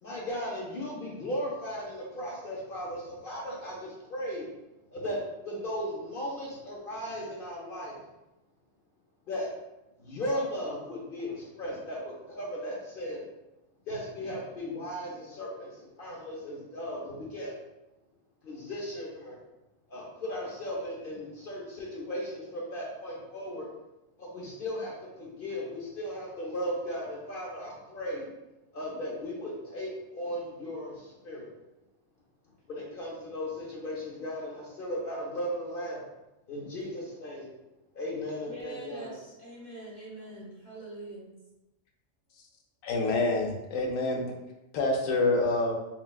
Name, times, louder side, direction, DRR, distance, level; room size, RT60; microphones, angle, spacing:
voice 1, 0.0-4.5 4.9-8.1 9.3-9.6 10.0-13.3 13.9-17.6 18.4-19.4 19.9-23.7 24.2-28.3 28.7-31.5 32.7-36.1 36.5-37.5 37.9-39.2, equal, 50° left, -3 dB, 0.8 m, -36 dB
voice 2, 38.5-41.3, right 1 dB, 35° right, -6 dB, 1.2 m, -44 dB
voice 3, 42.8-44.2 44.7-45.7, left 2 dB, 90° left, 1 dB, 1.1 m, -26 dB
5.9 x 2.2 x 2.3 m, 0.96 s
omnidirectional pair, 1.3 m